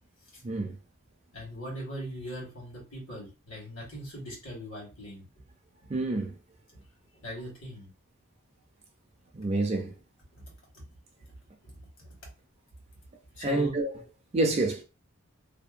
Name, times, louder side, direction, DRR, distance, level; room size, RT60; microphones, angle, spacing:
voice 1, 0.4-0.8 5.9-6.3 9.3-9.9 13.4-13.9 14.3-14.8, right 2 dB, 30° right, 0.4 m, -27 dB
voice 2, 1.3-5.2 5.8-5.9 6.7-6.8 7.1-7.9 10.3-10.4 10.7-10.9 11.2-11.3 11.6-12.1 13.3-13.7, equal, 70° left, 1.4 m, -41 dB
2.7 x 2.1 x 2.4 m
head